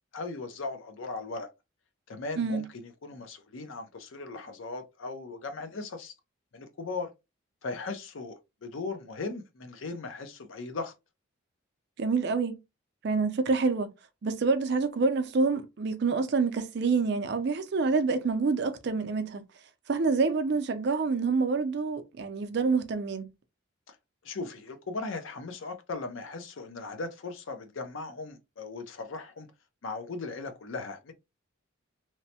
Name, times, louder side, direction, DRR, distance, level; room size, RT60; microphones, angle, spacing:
voice 1, 0.1-1.5 2.1-6.1 6.5-7.1 7.6-10.9 23.9-24.0 24.2-29.5 29.8-31.1, left 3 dB, 70° left, 0.6 m, -38 dB
voice 2, 12.0-12.6 13.0-13.9 14.2-19.4 19.9-23.3, right 4 dB, 55° right, 0.4 m, -27 dB
3.0 x 2.1 x 2.7 m
head